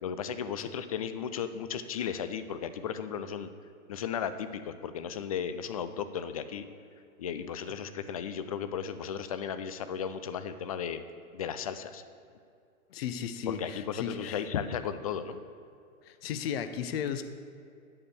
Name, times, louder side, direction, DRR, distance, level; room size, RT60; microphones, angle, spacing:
voice 1, 0.0-3.5 3.9-6.7 7.2-11.0 11.3-12.0 13.5-15.4, left 8 dB, 30° left, 11 dB, 0.4 m, -35 dB
voice 2, 12.9-14.4 16.0-17.2, left 8 dB, 45° left, 11 dB, 0.9 m, -35 dB
8.7 x 6.8 x 7.9 m, 2.4 s
hypercardioid pair, 120°, 43 cm